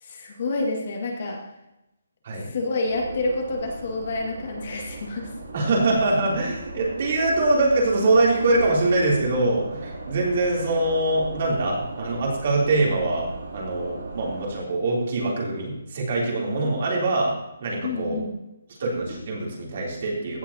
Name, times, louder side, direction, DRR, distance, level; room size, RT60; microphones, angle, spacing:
voice 1, 0.0-1.4 2.5-5.3 17.8-18.4, left 2 dB, 45° left, 0 dB, 2.0 m, -28 dB
sound 1, 2.8-14.6, right 2 dB, 65° right, 2.8 m, -38 dB
voice 2, 5.5-17.3 17.6-18.2 18.8-20.4, right 2 dB, 40° right, -3 dB, 3.1 m, -23 dB
15.5 x 7.5 x 2.8 m, 0.89 s
hypercardioid pair, 170°, 0 cm